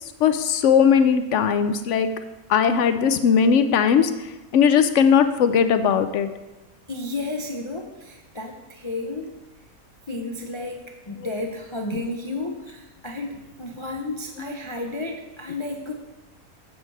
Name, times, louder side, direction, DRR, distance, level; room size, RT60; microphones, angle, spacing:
voice 1, 0.2-2.1 2.5-4.1 4.5-6.3 11.2-11.3 11.9-12.0 14.4-14.5, left 7 dB, 65° left, 10 dB, 0.8 m, -19 dB
voice 2, 6.9-9.3 10.1-15.9, left 2 dB, 40° left, 2 dB, 0.4 m, -32 dB
8.3 x 6.5 x 4.6 m, 1.1 s
omnidirectional pair, 1.5 m